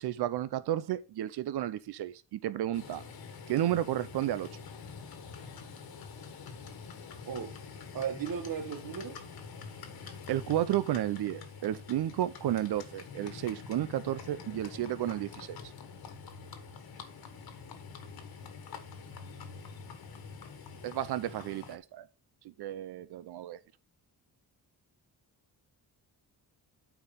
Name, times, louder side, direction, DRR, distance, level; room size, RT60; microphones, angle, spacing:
voice 1, 0.0-3.0 3.5-4.5 10.3-15.6 20.8-22.1 22.6-23.6, right 12 dB, 75° right, 0.7 m, -32 dB
Livestock farm animals working animals, 2.7-21.8, left 5 dB, 65° left, 1.5 m, -46 dB
voice 2, 7.2-7.6 7.9-9.2, right 7 dB, 60° right, 1.3 m, -36 dB
8.7 x 4.8 x 5.5 m
cardioid pair, 120°, 39 cm